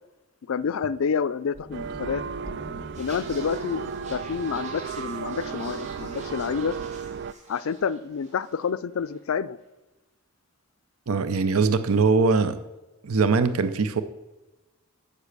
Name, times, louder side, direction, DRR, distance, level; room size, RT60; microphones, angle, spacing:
voice 1, 0.5-2.2 3.0-6.8 7.5-9.6, left 6 dB, 75° left, 18 dB, 0.4 m, -28 dB
sound 1, 1.5-5.8, right 1 dB, 15° left, 1.5 m, -46 dB
sound 2, 1.7-7.3, right 6 dB, 55° right, 0.3 m, -34 dB
sound 3, 2.9-8.7 8.9-9.2, right 2 dB, 35° right, 2.2 m, -46 dB
voice 2, 11.1-12.6 13.0-14.0, right 4 dB, 90° right, 12 dB, 0.6 m, -21 dB
9.9 x 6.8 x 6.6 m, 1.1 s
head